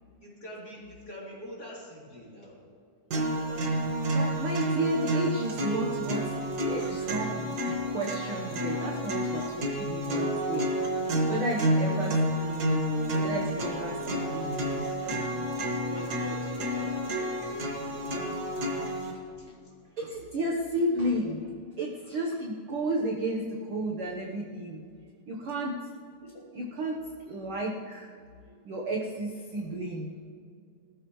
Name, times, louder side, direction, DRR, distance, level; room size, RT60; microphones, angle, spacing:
voice 1, 0.2-2.6 3.4-3.7 11.8-12.1 13.1-14.1 14.4-14.7 15.8-18.5 19.4-19.5 26.2-26.3, left 1 dB, 30° left, -5 dB, 3.5 m, -44 dB
sound 1, 3.1-19.1, right 1 dB, 40° right, 1.5 m, -30 dB
voice 2, 4.1-6.2 6.6-10.7 11.3-12.1 12.4-14.9 20.0-21.5 21.8-24.8 25.3-25.8 26.5-28.1 28.6-30.2, right 1 dB, 60° right, -1 dB, 1.5 m, -32 dB
20.0 x 13.5 x 3.2 m, 2.2 s
omnidirectional pair, 3.8 m